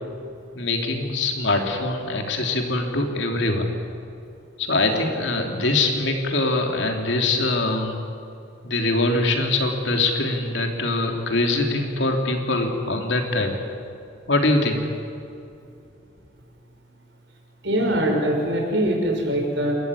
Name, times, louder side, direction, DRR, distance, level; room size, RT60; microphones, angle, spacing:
voice 1, 0.5-3.7 4.6-8.0 8.6-13.5 14.3-14.9, left 2 dB, 60° left, 3 dB, 3.3 m, -23 dB
voice 2, 17.6-19.7, right 1 dB, 60° right, 0 dB, 6.0 m, -23 dB
28.5 x 14.0 x 9.8 m, 2.6 s
head